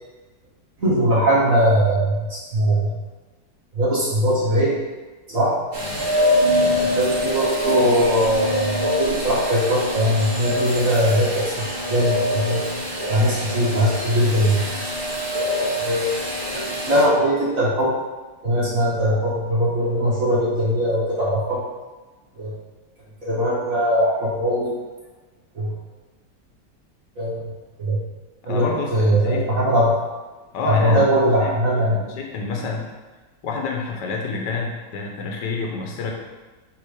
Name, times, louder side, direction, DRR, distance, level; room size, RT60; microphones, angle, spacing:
voice 1, 0.8-2.9 3.7-4.7 5.3-5.5 7.0-12.6 13.1-14.6 15.8-16.1 16.5-17.9 18.4-21.6 22.4-22.5 23.2-24.7 25.6-25.7 27.2-27.4 27.8-28.0 28.4-29.9 30.7-32.0, equal, 50° right, -8 dB, 1.7 m, -20 dB
sound 1, 5.7-17.0, left 1 dB, 35° right, 1.5 m, -24 dB
voice 2, 28.5-29.4 30.5-32.9 33.4-36.1, left 4 dB, 75° left, 0 dB, 1.6 m, -28 dB
7.0 x 3.5 x 4.9 m, 1.2 s
omnidirectional pair, 1.9 m